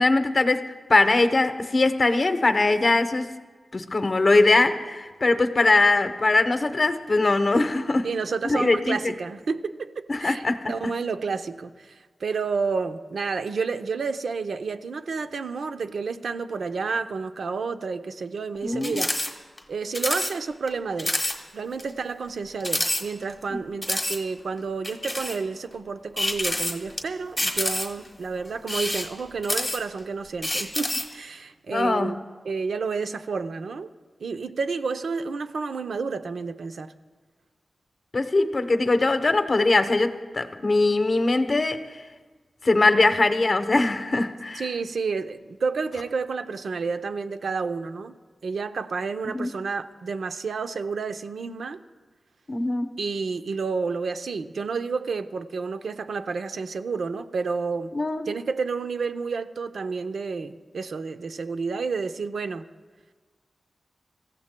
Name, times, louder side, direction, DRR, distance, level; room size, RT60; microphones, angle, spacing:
voice 1, 0.0-3.3 3.7-8.1 8.4-9.1 10.1-10.9 18.6-19.0 31.7-32.2 38.1-41.8 42.6-44.7 49.3-49.5 52.5-52.9 57.9-58.3, left 2 dB, 45° left, 9 dB, 0.8 m, -21 dB
voice 2, 8.0-19.1 19.7-21.2 21.5-32.2 32.4-33.9 34.2-36.9 44.5-48.1 48.4-51.8 53.0-57.9 58.3-62.7, right 4 dB, 85° right, 9 dB, 0.6 m, -30 dB
sound 1, 18.8-19.3 19.6-19.7 19.9-20.3 20.7-20.8 21.0-21.4 21.8-21.9 22.6-23.4 23.8-24.2 24.8-25.4 26.2-27.0 27.4-28.1 28.6-30.0 30.4-31.1, left 1 dB, 10° left, 1.4 m, -27 dB
26.5 x 15.0 x 2.2 m, 1.4 s
wide cardioid pair, 100°, 0 cm